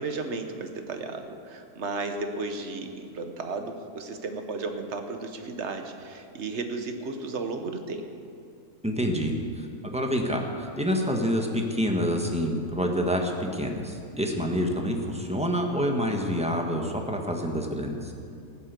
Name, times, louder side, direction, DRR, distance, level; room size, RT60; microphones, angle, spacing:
voice 1, 0.0-8.1, right 3 dB, 50° right, 6 dB, 1.3 m, -34 dB
voice 2, 8.8-18.1, equal, 5° right, 2 dB, 1.1 m, -27 dB
15.0 x 9.7 x 6.8 m, 2.4 s
omnidirectional pair, 1.7 m